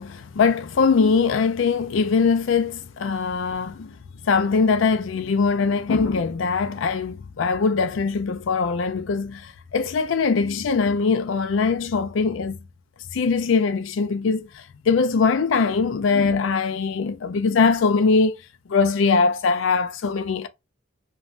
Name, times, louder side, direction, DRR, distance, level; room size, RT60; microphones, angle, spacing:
voice 1, 0.0-4.0 4.2-12.6 13.1-18.3 18.7-20.5, left 4 dB, 70° left, 0.4 m, -22 dB
3.1 x 2.2 x 2.5 m
head